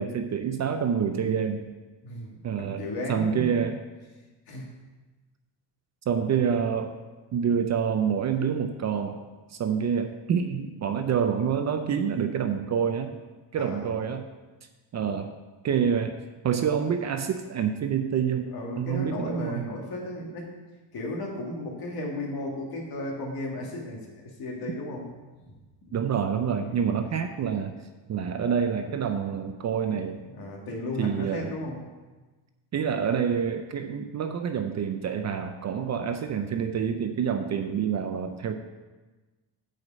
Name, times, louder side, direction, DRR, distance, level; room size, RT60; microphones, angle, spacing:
voice 1, 0.0-1.7 2.4-2.8 3.1-3.8 6.1-7.0 7.3-9.2 9.5-13.2 13.5-14.2 14.9-15.3 15.6-16.2 16.4-19.7 25.9-27.7 28.1-30.2 31.0-31.6 32.7-38.5, right 7 dB, 40° right, 7 dB, 0.5 m, -27 dB
voice 2, 2.0-3.6 4.5-4.6 13.6-14.0 18.5-20.5 20.9-25.1 26.6-27.0 30.2-31.9, left 1 dB, 55° left, -1 dB, 2.1 m, -35 dB
8.1 x 5.0 x 7.4 m, 1.2 s
cardioid pair, 165°, 44 cm